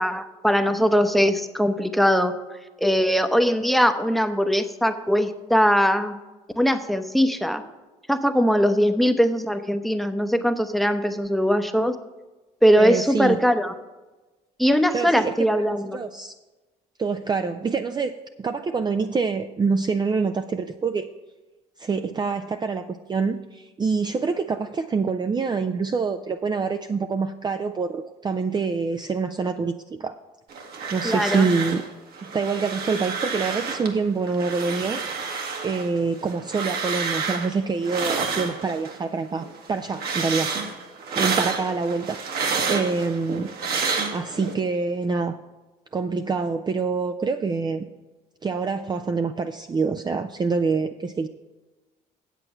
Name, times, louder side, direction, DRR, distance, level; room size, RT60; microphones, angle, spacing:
voice 1, 0.0-2.3 2.8-6.2 6.6-7.6 8.1-11.9 12.6-13.7 14.6-16.0 31.0-31.4, equal, ahead, 9 dB, 0.8 m, -21 dB
voice 2, 12.8-13.4 14.9-15.3 15.7-16.3 17.0-18.1 18.4-21.1 21.8-30.2 30.9-31.8 32.2-40.5 41.2-42.2 42.7-43.5 44.1-45.4 45.9-47.9 48.4-51.3, right 4 dB, 25° right, 7 dB, 0.5 m, -26 dB
sound 1, 30.5-33.9 34.3-39.0 39.4-44.5, right 5 dB, 60° right, 1.5 m, -29 dB
8.2 x 7.6 x 5.7 m, 1.2 s
supercardioid pair, 90°, 18 cm